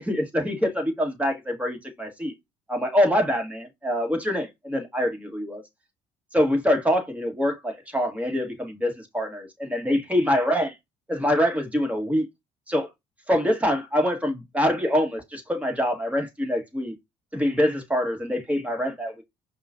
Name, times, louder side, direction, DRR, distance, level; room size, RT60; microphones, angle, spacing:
voice 1, 0.0-2.3 2.7-5.6 6.3-10.7 11.1-12.2 12.7-12.9 13.3-16.9 17.3-19.2, equal, 10° right, 1.6 m, -25 dB
5.3 x 2.4 x 2.5 m
hypercardioid pair, 60°, 17 cm